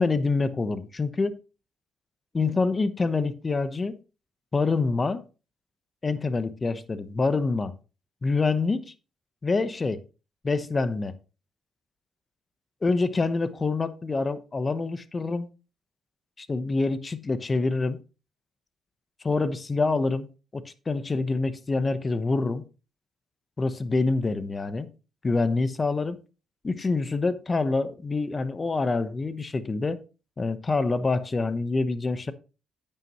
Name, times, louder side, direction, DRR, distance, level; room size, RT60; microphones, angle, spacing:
voice 1, 0.0-1.4 2.3-4.0 4.5-5.2 6.0-7.7 8.2-8.9 9.4-10.0 10.4-11.1 12.8-15.5 16.4-18.0 19.2-20.3 20.5-22.6 23.6-24.9 25.2-26.2 26.6-30.0 30.4-32.3, left 3 dB, 30° left, 1.0 m, -26 dB
9.5 x 9.0 x 3.1 m
cardioid pair, 90°, 0 cm